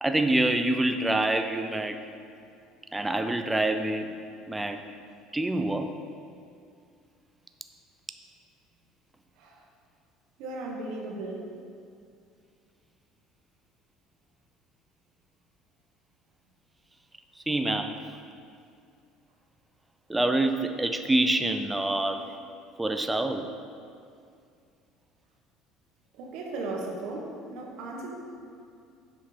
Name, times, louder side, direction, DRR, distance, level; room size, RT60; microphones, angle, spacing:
voice 1, 0.0-2.0 2.9-4.1 4.5-4.8 5.3-5.9 17.3-18.2 20.1-22.3 22.8-23.5, right 1 dB, 5° right, 7 dB, 0.4 m, -26 dB
voice 2, 10.4-11.5 26.1-28.1, right 2 dB, 65° right, 0 dB, 1.3 m, -36 dB
7.1 x 5.6 x 5.0 m, 2.4 s
cardioid pair, 150°, 0 cm